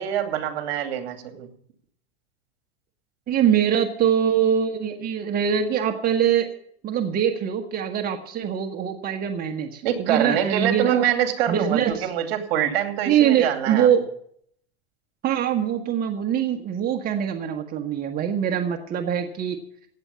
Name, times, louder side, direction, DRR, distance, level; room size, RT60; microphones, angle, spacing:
voice 1, 0.0-1.5 9.8-13.9, right 10 dB, 65° right, 7 dB, 2.6 m, -25 dB
voice 2, 3.3-6.5 6.8-11.0 11.5-12.1 13.1-14.1 15.2-19.6, right 9 dB, 30° right, 5 dB, 1.4 m, -23 dB
16.5 x 8.8 x 7.0 m, 0.65 s
supercardioid pair, 125°, 31 cm